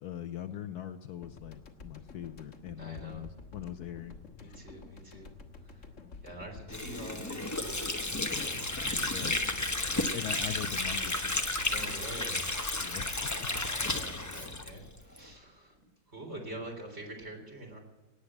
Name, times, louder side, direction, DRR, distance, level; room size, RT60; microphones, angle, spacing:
voice 1, 0.0-4.6 9.1-9.4 10.1-11.4 12.8-13.5, left 10 dB, 70° left, 9 dB, 1.1 m, -41 dB
sound 1, 1.2-13.7, left 4 dB, 45° left, 1.6 m, -51 dB
voice 2, 2.8-3.2 4.4-5.3 5.6-6.0 6.2-8.0 8.2-9.9 11.6-12.5 13.3-15.8 16.1-17.8, right 1 dB, 35° right, 1 dB, 3.9 m, -46 dB
Water / Sink (filling or washing), 6.7-15.2, left 2 dB, 15° left, 0.6 m, -33 dB
18.5 x 8.1 x 8.6 m, 1.2 s
omnidirectional pair, 1.9 m